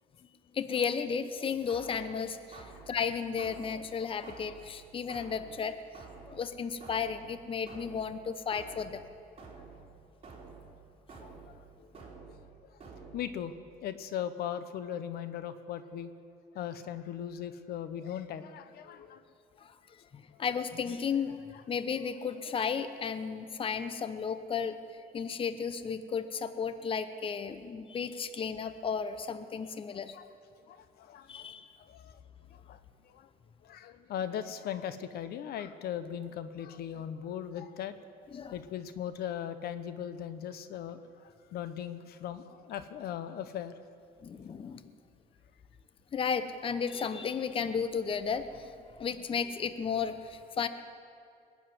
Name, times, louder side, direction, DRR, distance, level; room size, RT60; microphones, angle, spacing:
voice 1, 0.5-5.8 6.2-9.0 11.2-11.4 19.6-21.4 21.7-24.8 25.1-30.2 31.3-31.7 38.3-38.5 44.2-44.9 46.1-48.7 49.0-50.7, left 6 dB, 30° left, 11 dB, 0.8 m, -34 dB
sound 1, 1.7-13.6, right 4 dB, 35° right, 3.6 m, -51 dB
voice 2, 12.0-12.8 13.1-13.5 13.8-16.1 16.5-19.2 20.3-20.4 21.5-21.6 30.1-30.3 30.6-32.2 32.5-33.3 33.6-38.1 38.5-43.7, left 9 dB, 70° left, 12 dB, 0.9 m, -39 dB
20.5 x 7.2 x 9.6 m, 2.4 s
cardioid pair, 110°, 17 cm